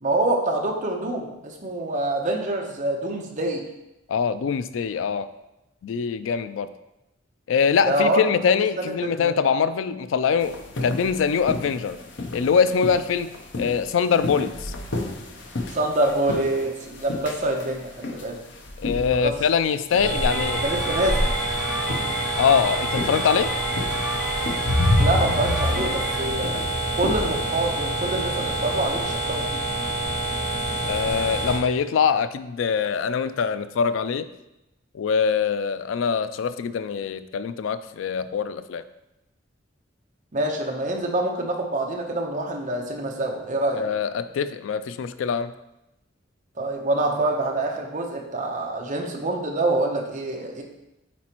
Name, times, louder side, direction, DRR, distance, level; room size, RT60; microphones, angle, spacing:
voice 1, 0.0-3.6 7.8-8.2 8.5-9.4 15.7-18.4 19.1-19.4 20.0-20.1 20.6-21.3 25.0-26.5 26.9-29.6 40.3-43.8 46.6-50.6, right 2 dB, 40° right, 1 dB, 0.9 m, -26 dB
voice 2, 4.1-5.3 5.8-6.7 7.5-12.0 12.3-13.3 13.6-14.7 18.8-20.6 22.4-23.5 30.8-34.3 34.9-38.8 43.7-45.5, left 6 dB, 85° left, 13 dB, 0.3 m, -23 dB
sound 1, 10.4-19.6 19.9-20.2 21.3-21.4 21.8-27.4, left 2 dB, 65° left, 0.8 m, -29 dB
sound 2, 19.9-31.6, right 1 dB, 40° left, 1.9 m, -27 dB
sound 3, 20.3-26.3, right 1 dB, 5° right, 0.5 m, -33 dB
8.6 x 4.2 x 3.0 m, 0.92 s
head